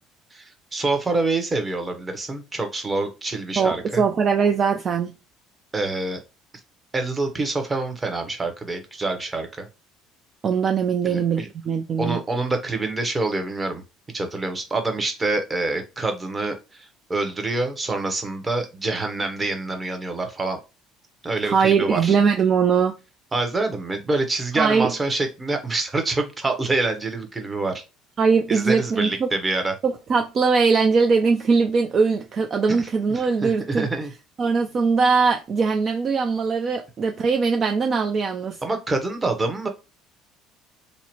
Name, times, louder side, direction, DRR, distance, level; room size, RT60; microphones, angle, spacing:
voice 1, 0.3-4.0 5.7-6.2 6.9-9.7 11.0-11.5 12.0-13.8 14.1-20.6 21.2-22.2 23.3-27.8 28.5-29.8 32.8-32.9 33.1-34.1 38.6-39.7, right 3 dB, 25° right, 0.9 m, -26 dB
voice 2, 3.6-5.1 10.4-12.2 21.4-22.9 24.5-24.9 28.2-29.3 29.8-33.9 34.4-38.6, right 5 dB, 45° right, 0.4 m, -21 dB
2.7 x 2.1 x 2.8 m
hypercardioid pair, 60°, 0 cm